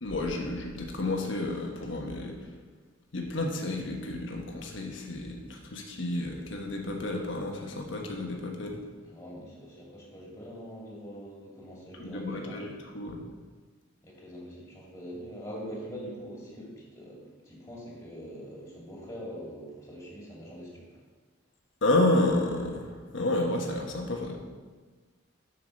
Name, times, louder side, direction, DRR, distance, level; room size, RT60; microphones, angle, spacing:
voice 1, 0.0-2.5 3.1-8.8 12.0-13.3 21.8-24.4, left 2 dB, 70° left, 1 dB, 1.2 m, -30 dB
voice 2, 9.0-12.9 14.0-21.0, equal, 15° left, -4 dB, 2.5 m, -43 dB
7.7 x 5.7 x 6.4 m, 1.4 s
head